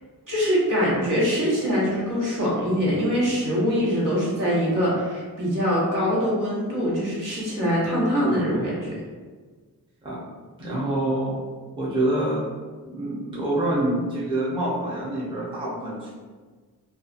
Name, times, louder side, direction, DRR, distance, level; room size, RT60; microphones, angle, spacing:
voice 1, 0.3-9.0, equal, 55° right, -7 dB, 1.2 m, -23 dB
voice 2, 10.6-11.4 11.7-12.4 12.8-16.1, right 1 dB, 15° right, -8 dB, 0.7 m, -26 dB
2.6 x 2.3 x 2.5 m, 1.4 s
cardioid pair, 85°, 38 cm